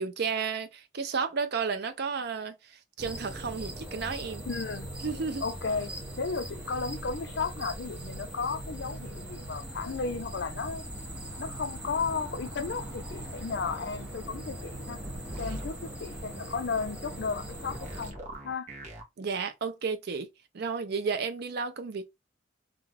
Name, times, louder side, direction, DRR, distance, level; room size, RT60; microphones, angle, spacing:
voice 1, 0.0-4.4 5.0-5.4 15.5-15.6 19.2-20.3 20.5-22.1, right 5 dB, 55° right, 0.4 m, -32 dB
sound 1, 3.0-18.1, right 1 dB, 5° right, 0.6 m, -40 dB
voice 2, 4.5-4.9 5.4-10.9 11.4-15.0 15.4-18.2 18.4-18.7, left 5 dB, 60° left, 0.5 m, -34 dB
sound 2, 9.7-18.2, left 2 dB, 80° left, 0.9 m, -50 dB
sound 3, 15.0-15.7 17.7-19.0, equal, 35° right, 0.8 m, -40 dB
2.4 x 2.3 x 3.1 m
head